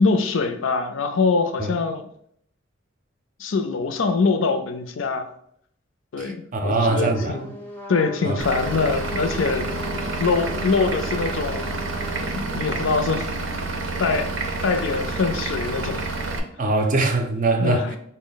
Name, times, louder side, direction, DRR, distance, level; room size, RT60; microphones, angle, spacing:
voice 1, 0.0-2.1 3.4-5.3 6.1-7.5 7.9-9.7 10.2-11.7 12.4-13.3 14.0-14.3 14.6-16.1 17.6-18.0, left 4 dB, 75° left, 0.5 m, -23 dB
voice 2, 6.2-7.4 8.2-8.4 16.6-18.0, right 3 dB, 40° right, 0.5 m, -22 dB
Trumpet, 6.8-12.4, equal, 10° left, 0.5 m, -37 dB
Vehicle / Engine, 8.4-16.4, right 3 dB, 90° right, 0.6 m, -29 dB
4.2 x 2.1 x 3.8 m
head